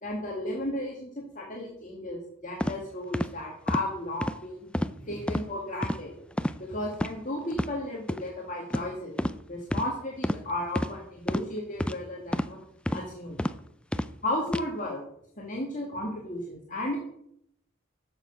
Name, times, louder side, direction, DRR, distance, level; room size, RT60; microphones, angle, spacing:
voice 1, 0.0-4.7 5.0-6.2 6.6-9.2 9.5-12.6 12.9-13.4 14.2-15.0 15.4-17.0, left 1 dB, 40° left, -2 dB, 2.1 m, -34 dB
sound 1, 2.6-2.7 3.1-3.3 3.7-3.8 4.2-4.4 4.7-4.9 5.3-5.4 5.8-6.0 6.4-6.6 6.9-7.1 7.5-7.7 8.1-8.2 8.7-8.9 9.2-9.4 9.7-9.9 10.2-10.4 10.7-10.9 11.3-11.4 11.8-12.0 12.3-12.5 12.9-13.0 13.4-13.5 13.9-14.1 14.5-14.6, left 1 dB, 5° left, 0.3 m, -28 dB
14.0 x 7.0 x 5.5 m, 0.74 s
head